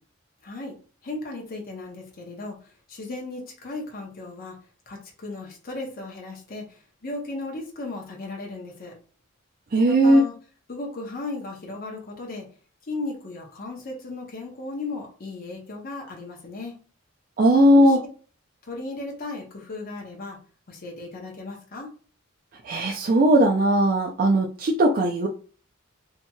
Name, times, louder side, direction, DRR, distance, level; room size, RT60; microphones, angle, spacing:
voice 1, 0.4-0.7 1.0-4.6 4.9-8.9 9.8-10.3 10.7-12.5 12.8-16.8 17.7-18.0 18.6-20.4 20.7-21.9, left 2 dB, 45° left, 0 dB, 0.7 m, -36 dB
voice 2, 9.7-10.2 17.4-18.0 22.6-25.3, right 1 dB, 40° right, -2 dB, 0.4 m, -18 dB
2.8 x 2.7 x 2.2 m, 0.39 s
head